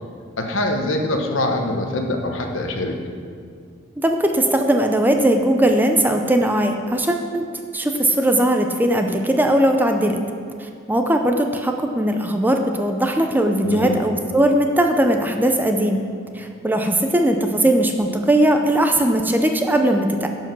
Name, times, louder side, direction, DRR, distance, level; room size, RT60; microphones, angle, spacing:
voice 1, 0.4-3.0 13.6-14.0, left 1 dB, 80° left, 3 dB, 1.1 m, -23 dB
voice 2, 4.0-7.4 7.7-10.2 10.6-16.0 16.3-20.3, right 1 dB, 10° right, 4 dB, 0.5 m, -19 dB
11.0 x 4.8 x 6.1 m, 2.2 s
head